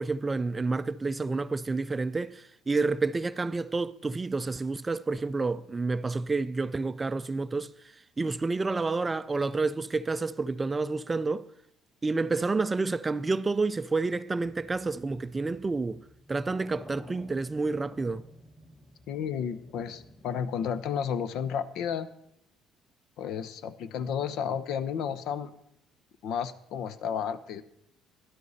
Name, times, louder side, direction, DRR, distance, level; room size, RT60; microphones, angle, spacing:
voice 1, 0.0-7.7 8.2-11.4 12.0-18.2, right 3 dB, 20° right, 0.4 m, -29 dB
sound 1, 14.4-20.3, left 1 dB, 20° left, 2.9 m, -51 dB
voice 2, 19.1-22.1 23.2-25.5 26.2-27.6, left 7 dB, 70° left, 0.7 m, -32 dB
12.5 x 11.0 x 4.1 m
cardioid pair, 125°, 0 cm